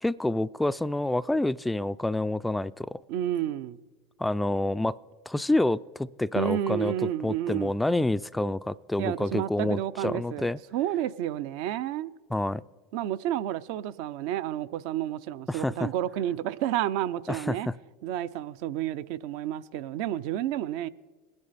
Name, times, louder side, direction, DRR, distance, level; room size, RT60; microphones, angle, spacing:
voice 1, 0.0-3.0 4.2-5.0 5.3-6.9 7.2-10.6 12.3-12.6 15.5-15.9 17.3-17.6, left 1 dB, 5° left, 0.3 m, -28 dB
voice 2, 3.1-3.8 6.4-7.7 9.0-12.1 12.9-17.7 18.0-20.9, right 12 dB, 65° right, 0.5 m, -30 dB
21.0 x 9.7 x 4.1 m
hypercardioid pair, 90°, 0 cm